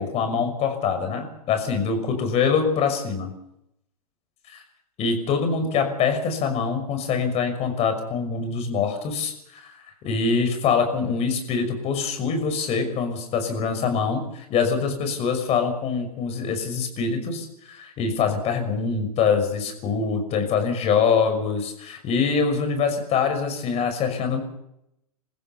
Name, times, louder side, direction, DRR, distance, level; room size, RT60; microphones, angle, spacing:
voice 1, 0.0-3.3 4.5-4.6 5.0-9.7 10.0-24.4, left 5 dB, 35° left, 7 dB, 6.0 m, -24 dB
26.5 x 15.5 x 6.9 m, 0.80 s
hypercardioid pair, 105°, 20 cm